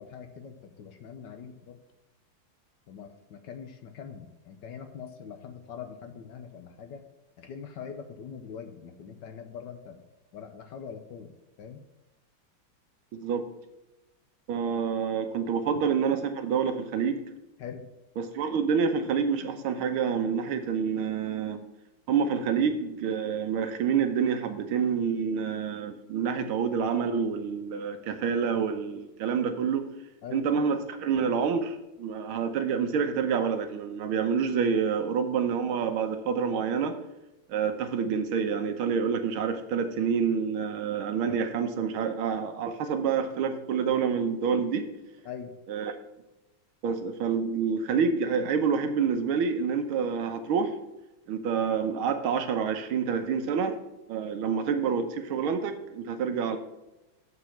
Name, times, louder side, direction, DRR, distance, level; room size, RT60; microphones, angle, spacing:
voice 1, 0.0-1.8 2.9-7.0 7.4-10.0 10.3-11.8 17.6-17.8 30.2-30.5 45.2-45.5, left 7 dB, 65° left, 7 dB, 1.3 m, -43 dB
voice 2, 13.1-13.5 14.5-17.2 18.2-21.6 22.1-29.9 30.3-37.0 37.5-44.9 45.7-45.9 46.8-50.7 51.3-53.8 54.1-56.6, right 6 dB, 75° right, 7 dB, 1.7 m, -27 dB
8.0 x 5.0 x 5.7 m, 1.0 s
omnidirectional pair, 2.3 m